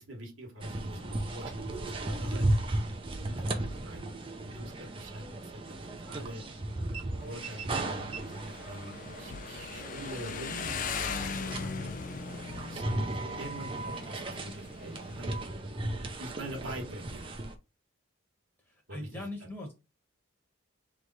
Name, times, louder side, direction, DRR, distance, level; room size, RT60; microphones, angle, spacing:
voice 1, 0.0-2.5 3.2-6.4 7.2-15.4 16.2-17.5 18.9-19.3, right 1 dB, 70° right, 1 dB, 1.3 m, -45 dB
sound 1, 0.6-17.5, right 1 dB, 25° right, 0.5 m, -36 dB
Motorcycle, 7.2-15.4, left 5 dB, 40° left, 0.3 m, -40 dB
voice 2, 18.6-19.7, left 1 dB, 10° left, -1 dB, 1.2 m, -40 dB
3.3 x 3.1 x 3.9 m, 0.27 s
head